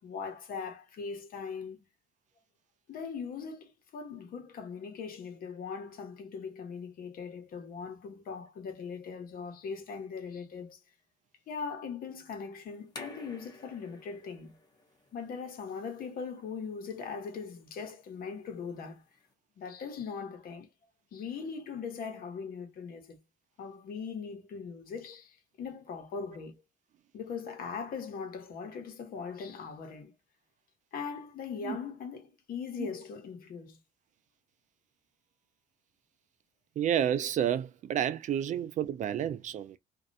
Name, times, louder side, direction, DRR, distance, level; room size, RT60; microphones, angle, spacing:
voice 1, 0.0-1.9 2.9-10.8 11.5-14.5 15.1-19.0 19.6-20.7 21.1-23.2 23.6-26.6 27.1-30.1 30.9-33.8, left 5 dB, 60° left, 1.1 m, -40 dB
sound 1, 12.7-19.3, left 2 dB, 25° left, 0.8 m, -54 dB
voice 2, 36.8-39.8, right 10 dB, 45° right, 0.4 m, -30 dB
2.5 x 2.1 x 2.6 m
cardioid pair, 110°, 17 cm